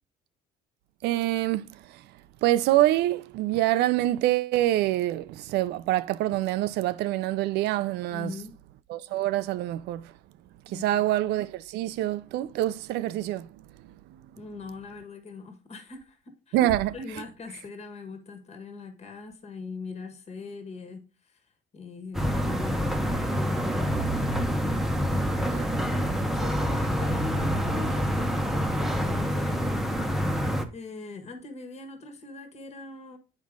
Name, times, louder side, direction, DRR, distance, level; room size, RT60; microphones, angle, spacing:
voice 1, 1.0-2.1 2.4-8.3 8.9-10.1 10.7-13.5 13.8-14.2 16.5-16.9 25.5-25.7, right 14 dB, 80° right, 0.5 m, -26 dB
voice 2, 8.1-8.5 10.7-11.0 14.4-21.4 21.7-25.6 26.0-30.4 30.7-33.2, left 4 dB, 40° left, 1.5 m, -42 dB
sound 1, 22.1-30.6, equal, ahead, 0.9 m, -27 dB
7.5 x 4.9 x 3.6 m
cardioid pair, 110°, 17 cm